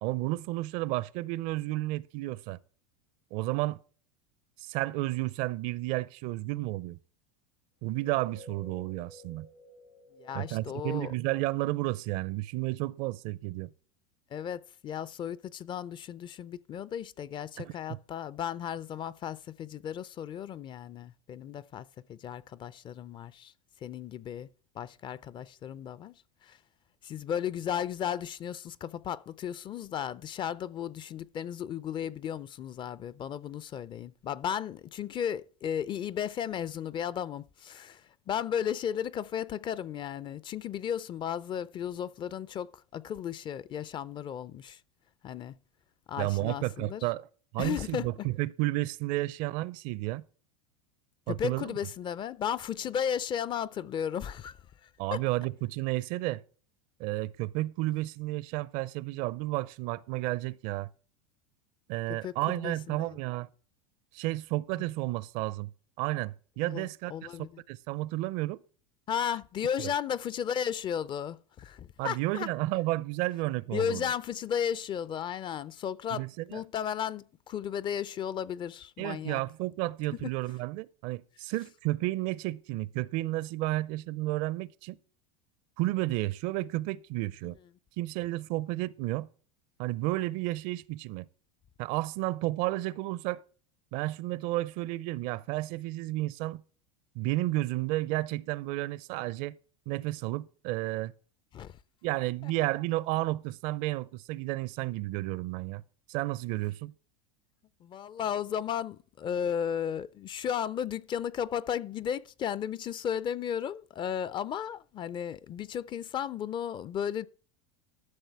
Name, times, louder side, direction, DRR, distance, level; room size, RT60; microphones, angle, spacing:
voice 1, 0.0-2.6 3.3-3.8 4.7-7.0 7.8-9.5 10.3-13.7 17.6-18.0 46.2-47.3 47.5-50.2 51.3-51.7 55.0-56.4 57.0-60.9 61.9-63.5 64.1-65.7 66.0-67.3 67.7-68.6 69.8-69.9 72.0-74.1 76.1-76.6 79.0-85.0 85.8-87.6 88.0-89.3 89.8-91.3 91.8-93.4 93.9-96.6 97.2-99.6 99.9-101.1 102.0-105.8 106.1-106.9, right 18 dB, 55° right, 0.5 m, -32 dB
sound 1, 7.8-12.4, left 1 dB, 80° left, 4.2 m, -54 dB
voice 2, 10.2-11.1 14.3-23.5 23.8-24.5 24.8-26.1 26.4-26.6 27.0-44.8 45.2-45.6 46.1-47.0 47.6-48.3 51.3-54.6 55.1-55.2 62.1-63.1 66.7-67.6 69.1-72.5 73.7-76.3 76.5-79.4 101.5-101.8 102.4-102.5 107.8-117.3, left 9 dB, 30° left, 0.4 m, -34 dB
13.0 x 6.4 x 4.6 m
supercardioid pair, 115°, 16 cm